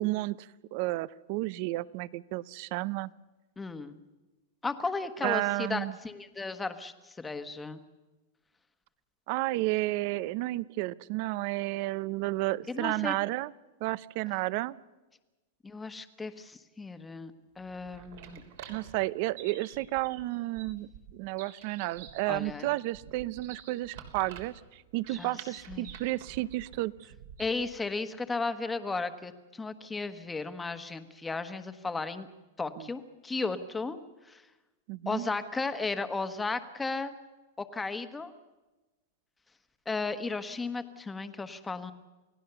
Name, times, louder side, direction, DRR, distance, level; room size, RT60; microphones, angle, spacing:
voice 1, 0.0-3.1 5.2-5.9 9.3-13.5 13.8-14.8 18.7-26.9 32.8-32.9 34.9-35.3, right 19 dB, 50° right, 20 dB, 0.7 m, -32 dB
voice 2, 3.6-4.0 4.6-7.8 12.7-13.2 15.6-18.4 22.3-22.7 25.1-25.9 27.4-32.3 32.6-34.0 34.2-34.5 35.0-37.2 37.6-38.3 39.8-41.9, left 3 dB, 10° left, 10 dB, 1.3 m, -35 dB
sound 1, 17.6-27.8, right 8 dB, 65° right, 3.5 m, -49 dB
29.0 x 17.0 x 6.9 m, 1.1 s
supercardioid pair, 150°, 0 cm